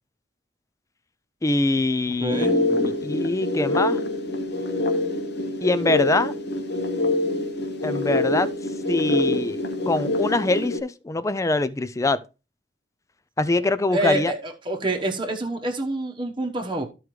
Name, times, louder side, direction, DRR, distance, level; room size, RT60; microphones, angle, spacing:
voice 1, 1.4-4.0 5.6-6.3 7.8-8.5 8.9-12.2 13.4-14.3, left 2 dB, 15° left, 0.4 m, -24 dB
voice 2, 2.2-2.6 13.6-16.9, right 1 dB, 25° right, 1.1 m, -27 dB
sound 1, 2.3-10.8, left 2 dB, 65° left, 1.3 m, -25 dB
13.5 x 4.7 x 3.1 m
head